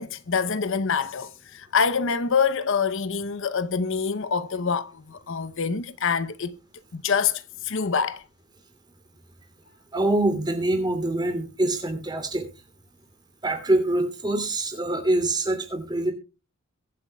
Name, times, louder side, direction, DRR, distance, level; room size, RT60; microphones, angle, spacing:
voice 1, 0.0-6.6 6.9-8.2, left 6 dB, 60° left, 0.7 m, -26 dB
voice 2, 9.9-12.5 13.4-16.1, right 2 dB, 20° right, 2.8 m, -24 dB
22.5 x 8.0 x 2.3 m
head